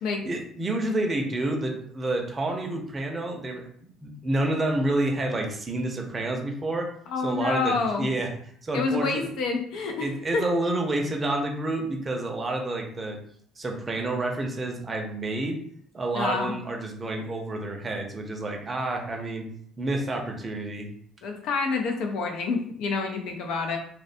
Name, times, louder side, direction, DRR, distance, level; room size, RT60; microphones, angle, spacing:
voice 1, 0.2-6.9 7.2-8.3 8.6-9.3 10.0-13.2 13.6-15.6 15.9-19.5 19.8-20.9, right 2 dB, 30° right, 2 dB, 0.6 m, -29 dB
voice 2, 7.1-8.1 8.7-10.5 16.1-16.5 21.2-23.8, left 4 dB, 70° left, 3 dB, 0.4 m, -28 dB
2.5 x 2.1 x 2.5 m, 0.63 s
hypercardioid pair, 60°, 0 cm